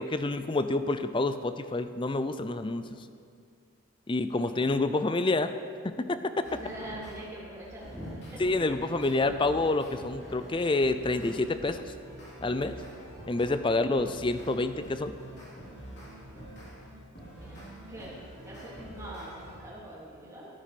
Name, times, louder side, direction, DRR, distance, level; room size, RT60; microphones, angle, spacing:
voice 1, 0.0-2.8 4.1-5.5 5.8-6.3 8.4-11.8 12.4-12.8 13.3-15.1, left 2 dB, 20° left, 11 dB, 0.4 m, -28 dB
voice 2, 4.3-4.8 6.6-8.4 13.8-13.9 17.3-18.1 18.4-20.5, right 1 dB, 15° right, -7 dB, 3.0 m, -43 dB
sound 1, 6.4-7.2 7.6-13.6 14.0-19.6, right 1 dB, 50° left, 3.7 m, -46 dB
13.5 x 9.8 x 5.0 m, 2.3 s
head